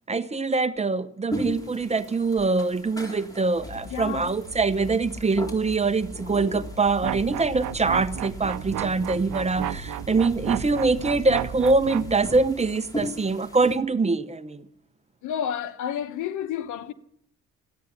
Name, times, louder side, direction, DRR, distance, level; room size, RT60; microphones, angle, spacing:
voice 1, 0.1-14.6, right 3 dB, 20° right, 0.9 m, -24 dB
sound 1, 1.3-13.8, left 1 dB, 10° left, 3.6 m, -40 dB
sound 2, 3.6-13.6, left 1 dB, 30° left, 3.0 m, -42 dB
voice 2, 3.8-4.3 15.2-16.9, left 9 dB, 85° left, 1.1 m, -30 dB
sound 3, 7.0-12.1, right 14 dB, 80° right, 0.7 m, -33 dB
14.0 x 9.3 x 9.9 m
cardioid pair, 90°, 30 cm